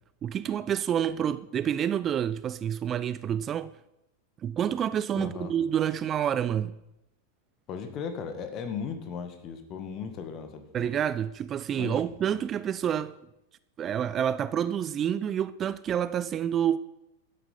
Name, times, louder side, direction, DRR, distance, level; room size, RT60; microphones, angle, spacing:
voice 1, 0.2-3.7 4.4-6.8 10.7-13.1 13.8-16.8, right 9 dB, 25° right, 0.3 m, -28 dB
voice 2, 5.1-5.5 7.7-10.9 11.8-12.0, left 6 dB, 35° left, 1.7 m, -36 dB
12.0 x 8.3 x 5.6 m
figure-of-eight pair, 90°, 0 cm